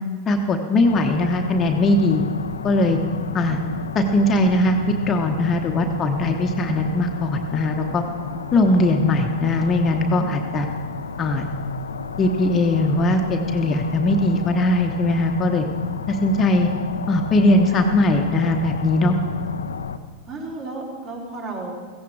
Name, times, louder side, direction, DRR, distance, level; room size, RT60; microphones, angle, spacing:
voice 1, 0.3-2.2 2.6-3.0 3.3-3.6 3.9-8.0 8.5-10.7 11.2-11.5 12.2-15.7 16.1-16.7 17.1-19.2, left 1 dB, 25° left, 4 dB, 1.0 m, -20 dB
sound 1, 0.8-20.0, left 6 dB, 70° left, 0.6 m, -32 dB
voice 2, 20.3-21.8, right 3 dB, 40° right, -2 dB, 4.0 m, -33 dB
16.5 x 15.5 x 4.7 m, 1.5 s
figure-of-eight pair, 90°, 0 cm